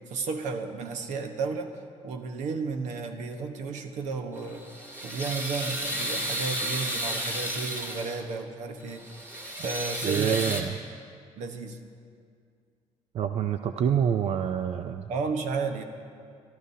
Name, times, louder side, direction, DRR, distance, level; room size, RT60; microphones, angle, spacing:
voice 1, 0.1-1.7 2.0-4.6 5.0-9.0 9.6-10.6 11.4-11.8 15.1-15.8, right 4 dB, 85° right, 5 dB, 1.2 m, -33 dB
sound 1, 4.4-8.3 8.8-10.6, equal, 20° right, 2.0 m, -33 dB
voice 2, 10.0-10.7 13.1-15.1, right 8 dB, 60° right, 8 dB, 0.5 m, -27 dB
25.0 x 13.0 x 2.8 m, 2.2 s
cardioid pair, 105°, 12 cm